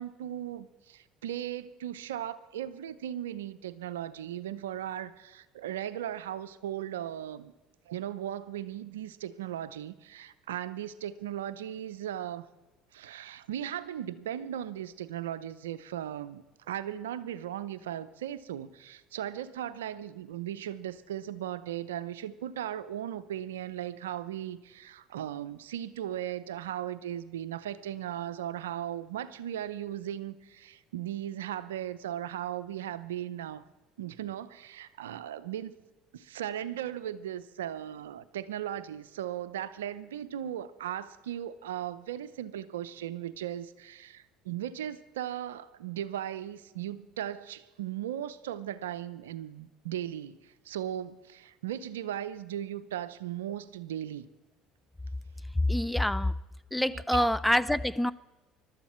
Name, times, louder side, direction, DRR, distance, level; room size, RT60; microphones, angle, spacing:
voice 1, 0.0-7.5 7.9-12.4 12.9-33.6 34.0-35.7 36.1-54.3 56.9-57.3, right 11 dB, 90° right, 0.6 m, -37 dB
voice 2, 55.7-56.4 56.7-58.1, left 1 dB, 5° left, 0.5 m, -26 dB
21.5 x 12.5 x 4.4 m
hypercardioid pair, 75°, 0 cm